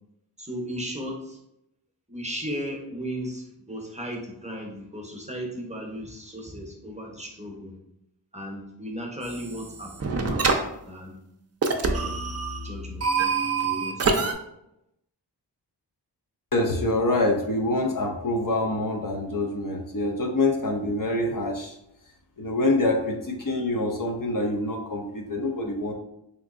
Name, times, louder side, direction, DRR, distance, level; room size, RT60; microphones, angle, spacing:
voice 1, 0.4-1.4 2.1-7.7 8.3-10.4 10.9-11.2 11.8-12.2 12.6-13.1 13.6-14.1, equal, 15° right, -1 dB, 0.7 m, -36 dB
sound 1, 9.2-9.7 10.0-10.6 11.6-14.3, right 4 dB, 40° right, 0.4 m, -25 dB
voice 2, 16.5-21.8 22.4-25.9, left 2 dB, 50° left, 1 dB, 0.5 m, -26 dB
3.4 x 2.9 x 2.4 m, 0.82 s
wide cardioid pair, 55°, 42 cm